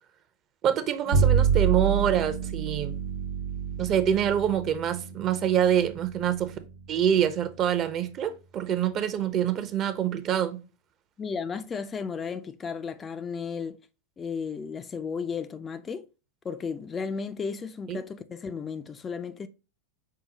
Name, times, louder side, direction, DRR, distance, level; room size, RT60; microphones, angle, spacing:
voice 1, 0.6-2.9 3.8-6.5 6.9-10.6 17.9-18.0, right 9 dB, 40° right, 0.6 m, -25 dB
Bowed string instrument, 1.1-7.6, right 7 dB, 75° right, 0.8 m, -28 dB
voice 2, 11.2-13.8 14.2-16.1 16.4-19.5, left 5 dB, 20° left, 0.3 m, -34 dB
5.5 x 2.1 x 3.9 m
hypercardioid pair, 105°, 0 cm